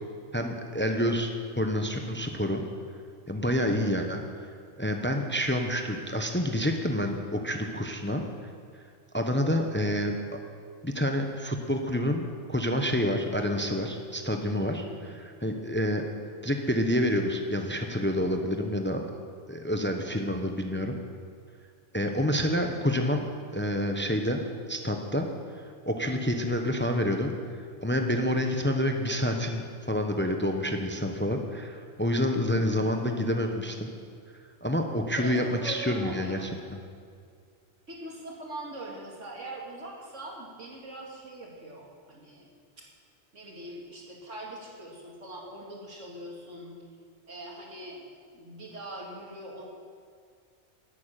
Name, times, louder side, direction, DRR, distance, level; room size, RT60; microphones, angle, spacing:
voice 1, 0.3-2.6 3.3-4.4 4.8-8.2 9.1-10.2 10.8-14.8 15.4-16.1 16.4-19.1 19.5-20.9 21.9-23.3 23.5-24.4 24.7-25.3 25.9-27.3 27.8-33.9 34.6-36.4, left 1 dB, 10° left, 4 dB, 0.8 m, -28 dB
voice 2, 32.3-32.7 35.1-36.5 37.9-42.5 42.8-42.9 43.3-46.8 47.3-48.0 48.3-49.6, right 1 dB, 85° right, -2 dB, 2.8 m, -42 dB
11.5 x 8.7 x 9.0 m, 2.2 s
omnidirectional pair, 1.2 m